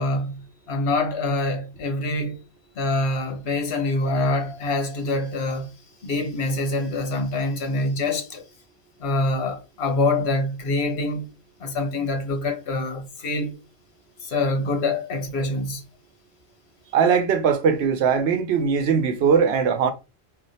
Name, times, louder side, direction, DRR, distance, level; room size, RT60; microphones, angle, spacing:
voice 1, 0.0-2.4 2.8-5.7 6.0-8.4 9.0-11.3 11.6-13.5 14.2-15.8, left 2 dB, 90° left, 1.1 m, -25 dB
voice 2, 16.9-19.9, right 6 dB, 80° right, 0.9 m, -20 dB
2.5 x 2.2 x 3.9 m
omnidirectional pair, 1.1 m